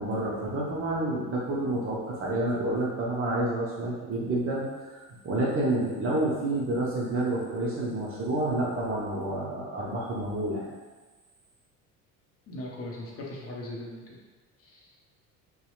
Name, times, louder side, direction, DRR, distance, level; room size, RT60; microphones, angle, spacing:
voice 1, 0.0-4.7 4.9-10.7, right 1 dB, 30° right, -5 dB, 0.5 m, -29 dB
voice 2, 12.5-14.2 14.6-14.9, left 1 dB, 30° left, -3 dB, 0.7 m, -39 dB
2.8 x 2.1 x 2.4 m, 1.3 s
figure-of-eight pair, 60°, 45 cm